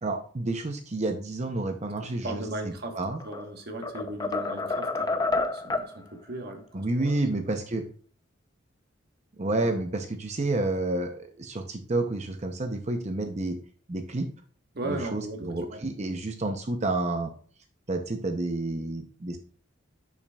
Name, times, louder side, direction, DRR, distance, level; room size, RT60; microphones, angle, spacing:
voice 1, 0.0-2.4 2.9-3.2 6.7-7.8 9.4-13.6 13.9-14.3 14.9-17.3 17.9-19.4, right 2 dB, 35° right, 5 dB, 0.6 m, -29 dB
voice 2, 2.0-3.0 3.2-7.2 7.4-7.6 14.7-15.9, right 2 dB, 50° right, 4 dB, 1.3 m, -37 dB
sound 1, 3.0-3.5 3.8-5.9, left 3 dB, 20° left, 0.6 m, -29 dB
11.0 x 5.9 x 2.3 m, 0.44 s
head